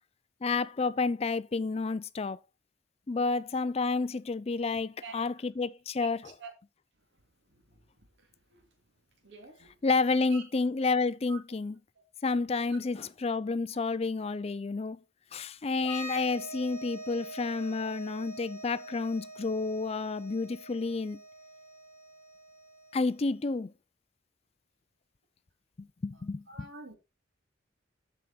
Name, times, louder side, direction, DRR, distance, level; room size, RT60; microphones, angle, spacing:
voice 1, 0.4-2.4 3.1-6.3 9.8-11.8 12.2-15.0 15.3-21.2 22.9-23.7 25.8-26.7, left 3 dB, 30° left, 0.4 m, -30 dB
voice 2, 9.2-9.7 10.3-10.4 11.3-11.4 26.5-27.0, right 4 dB, 60° right, 2.3 m, -45 dB
sound 1, 15.8-23.3, right 1 dB, 10° left, 1.5 m, -45 dB
13.0 x 4.9 x 4.2 m
head